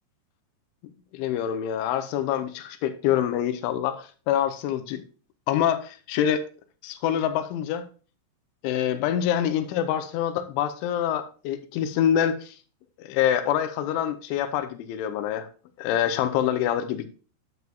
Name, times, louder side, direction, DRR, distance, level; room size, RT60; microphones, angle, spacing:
voice 1, 1.1-5.0 5.5-6.5 6.8-7.8 8.6-12.5 13.0-15.5 15.8-17.1, left 10 dB, 80° left, 2.9 m, -26 dB
9.5 x 9.3 x 2.3 m
omnidirectional pair, 5.8 m